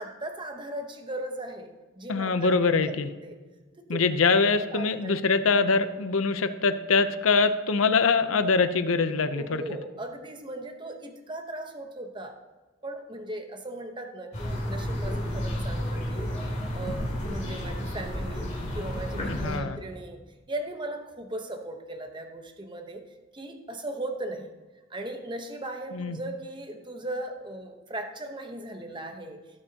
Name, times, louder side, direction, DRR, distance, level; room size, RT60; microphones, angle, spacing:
voice 1, 0.0-3.4 3.8-4.0 4.7-5.2 9.3-12.4 12.8-16.4 16.7-20.2 20.5-24.5 24.9-29.4, right 1 dB, 20° right, 5 dB, 0.9 m, -38 dB
voice 2, 2.1-3.1 3.9-9.6 19.3-19.8 25.9-26.2, left 4 dB, 80° left, 10 dB, 0.7 m, -23 dB
sound 1, 14.3-19.6, equal, 35° left, 2.6 m, -31 dB
17.5 x 6.9 x 2.8 m, 1.3 s
head